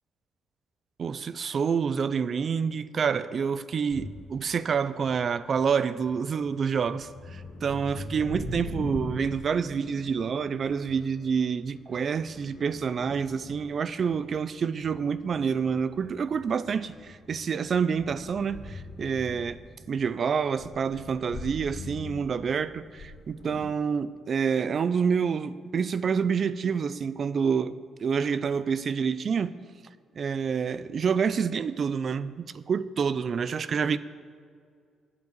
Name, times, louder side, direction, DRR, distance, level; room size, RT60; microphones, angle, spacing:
voice 1, 1.0-19.6 19.9-29.5 30.2-34.0, right 6 dB, 50° right, 0.4 m, -28 dB
sound 1, 3.9-4.3 5.0-5.6 6.0-14.4 14.8-20.1 20.4-23.7, left 1 dB, 60° left, 2.5 m, -42 dB
8.7 x 8.2 x 8.5 m
cardioid pair, 90°, 0 cm